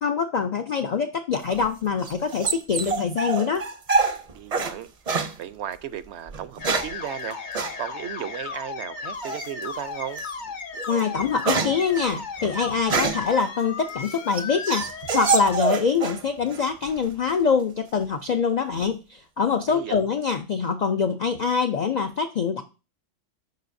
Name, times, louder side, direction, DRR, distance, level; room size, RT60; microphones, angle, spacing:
voice 1, 0.0-3.7 10.9-14.8 15.1-22.6, left 5 dB, 65° left, 0.4 m, -24 dB
sound 1, 1.5-4.8 5.1-5.3 6.3-7.0 7.5-7.8 9.2-9.6 10.2-10.3 10.7-13.3 13.9-16.2 16.5-17.1, right 4 dB, 40° right, 0.6 m, -26 dB
voice 2, 4.3-4.9 5.4-7.4 7.8-10.2 19.7-20.0, right 10 dB, 70° right, 0.8 m, -35 dB
sound 2, 6.6-15.6, left 4 dB, 45° left, 0.7 m, -35 dB
9.3 x 5.0 x 2.6 m
omnidirectional pair, 1.3 m